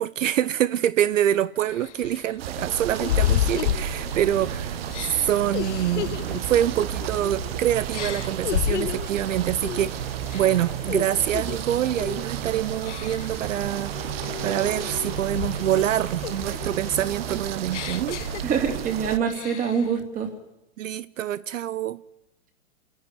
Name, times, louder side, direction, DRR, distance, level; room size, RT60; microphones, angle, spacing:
voice 1, 0.0-10.0 10.3-18.2 20.8-22.0, right 11 dB, 70° right, 0.7 m, -26 dB
sound 1, 1.1-1.2 1.7-4.4 4.9-7.5 7.9-9.2 9.6-9.9 10.3-11.6 12.0-12.3 12.8-13.4 13.9-15.9 16.2-18.9 19.3-19.9, left 12 dB, 60° left, 0.7 m, -31 dB
sound 2, 2.4-19.2, right 11 dB, 45° right, 1.1 m, -32 dB
sound 3, 3.0-17.5, left 5 dB, 40° left, 2.6 m, -44 dB
voice 2, 18.4-20.3, right 7 dB, 20° right, 2.8 m, -25 dB
27.0 x 11.0 x 9.6 m
hypercardioid pair, 145°, 40 cm